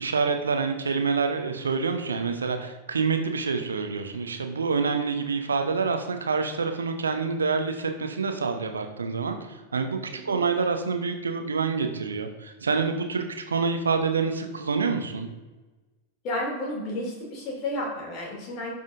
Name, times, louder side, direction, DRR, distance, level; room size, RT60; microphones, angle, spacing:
voice 1, 0.0-15.3, right 5 dB, 70° right, 6 dB, 0.8 m, -27 dB
voice 2, 16.2-18.7, left 1 dB, 40° left, -2 dB, 2.7 m, -31 dB
12.5 x 5.4 x 2.6 m, 1.2 s
figure-of-eight pair, 90°, 0 cm